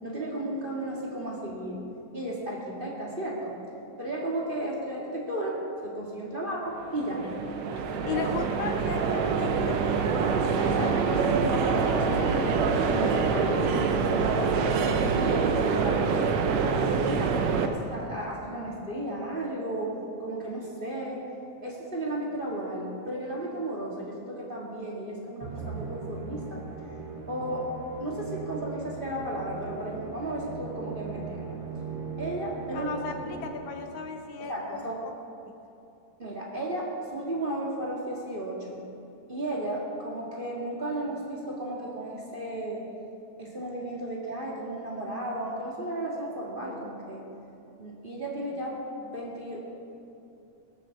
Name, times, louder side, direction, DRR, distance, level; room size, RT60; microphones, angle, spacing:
voice 1, 0.0-1.8 2.1-3.5 4.0-7.3 8.0-8.2 10.6-13.9 14.3-16.4 16.8-21.2 21.6-26.6 27.3-27.7 28.0-31.6 32.2-33.0 34.4-35.0 36.2-38.8 39.3-42.8 43.4-47.2 47.8-49.6, right 1 dB, 25° right, -3 dB, 1.4 m, -34 dB
sound 1, 6.8-17.7, right 5 dB, 70° right, 1.7 m, -25 dB
voice 2, 7.8-10.3 32.7-34.8, left 5 dB, 75° left, 5 dB, 1.9 m, -36 dB
Musical instrument, 25.4-33.9, right 5 dB, 45° right, 1.9 m, -39 dB
20.0 x 7.0 x 7.1 m, 2.8 s
omnidirectional pair, 3.8 m